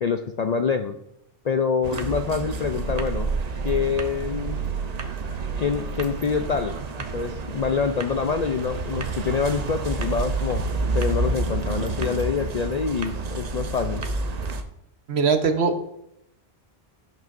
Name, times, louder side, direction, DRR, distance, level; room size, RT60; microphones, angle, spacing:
voice 1, 0.0-1.0 1.4-3.3 3.6-4.6 5.6-6.8 7.1-10.6 10.9-14.0, left 6 dB, 55° left, 6 dB, 0.4 m, -26 dB
sound 1, 1.8-14.6, right 3 dB, 45° right, 0.7 m, -29 dB
voice 2, 15.1-15.8, right 5 dB, 70° right, 7 dB, 1.1 m, -21 dB
16.0 x 6.1 x 2.5 m, 0.81 s
omnidirectional pair, 1.1 m